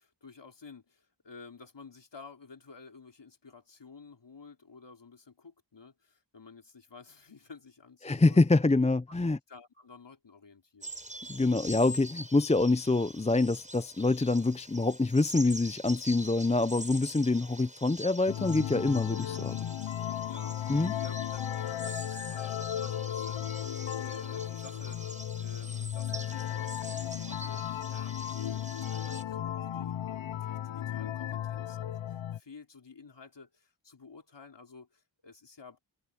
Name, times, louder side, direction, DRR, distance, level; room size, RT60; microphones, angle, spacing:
voice 1, 0.0-8.4 9.1-9.2 9.5-10.9 20.2-25.1 25.4-35.8, left 4 dB, 65° left, 3.4 m, -52 dB
voice 2, 8.0-9.4 11.3-19.6 20.7-20.9, left 2 dB, 15° left, 0.5 m, -26 dB
sound 1, 10.8-29.2, right 1 dB, 15° right, 6.9 m, -45 dB
sound 2, 18.3-32.4, left 11 dB, 80° left, 0.6 m, -35 dB
wide cardioid pair, 65°, 45 cm